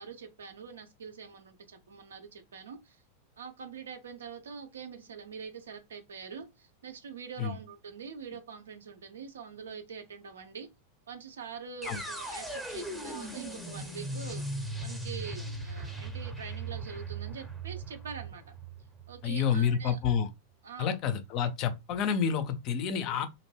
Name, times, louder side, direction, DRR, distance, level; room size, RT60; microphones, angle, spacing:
voice 1, 0.0-3.0 3.4-10.7 11.1-18.4 19.1-20.0 20.6-21.0, right 6 dB, 65° right, 0.5 m, -44 dB
sound 1, 11.8-19.8, right 2 dB, ahead, 0.7 m, -39 dB
voice 2, 19.2-20.3 20.8-23.3, left 7 dB, 40° left, 0.4 m, -29 dB
2.5 x 2.1 x 3.2 m
figure-of-eight pair, 90°, 0 cm